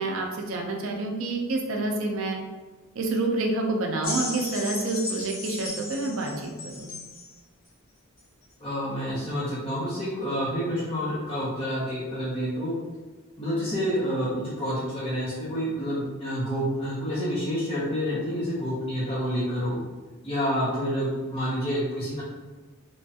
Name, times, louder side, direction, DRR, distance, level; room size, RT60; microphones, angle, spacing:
voice 1, 0.0-2.4 3.0-6.9, right 2 dB, 60° right, 1 dB, 0.4 m, -28 dB
sound 1, 4.0-7.3 8.2-8.3, left 2 dB, 70° left, 1.4 m, -35 dB
voice 2, 8.6-12.7 13.4-19.8 20.2-22.2, equal, 25° left, -10 dB, 0.6 m, -28 dB
3.0 x 2.2 x 2.7 m, 1.3 s
head